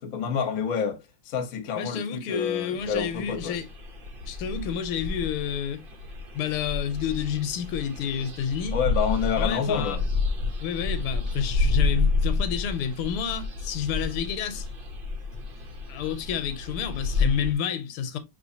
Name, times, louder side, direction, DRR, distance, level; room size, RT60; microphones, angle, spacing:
voice 1, 0.0-3.6 8.7-10.0, left 6 dB, 50° left, 1.1 m, -28 dB
voice 2, 1.8-3.7 4.3-5.8 6.3-8.8 9.4-10.0 10.6-14.7 15.9-18.2, left 8 dB, 80° left, 1.6 m, -29 dB
sound 1, 2.8-17.5, left 3 dB, 65° right, 0.5 m, -30 dB
5.9 x 3.1 x 2.8 m
omnidirectional pair, 2.4 m